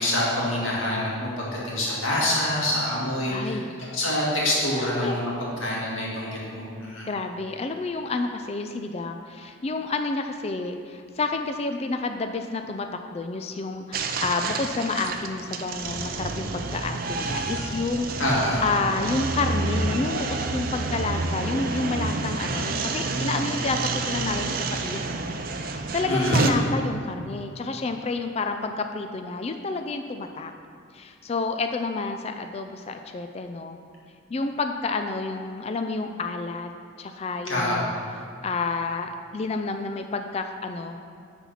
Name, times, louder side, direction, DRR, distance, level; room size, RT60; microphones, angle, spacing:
voice 1, 0.0-3.6 3.9-5.3 5.6-7.1 18.2-18.6 26.1-26.5 37.5-37.8, left 1 dB, 80° left, -5 dB, 2.2 m, -26 dB
voice 2, 3.3-3.7 4.8-5.2 7.1-18.1 18.3-25.1 25.7-30.5 30.9-33.8 34.3-36.7 37.0-41.0, left 3 dB, 30° left, 6 dB, 0.3 m, -30 dB
sound 1, 13.9-26.5, right 3 dB, 45° right, 0.5 m, -29 dB
9.8 x 4.3 x 5.6 m, 2.2 s
head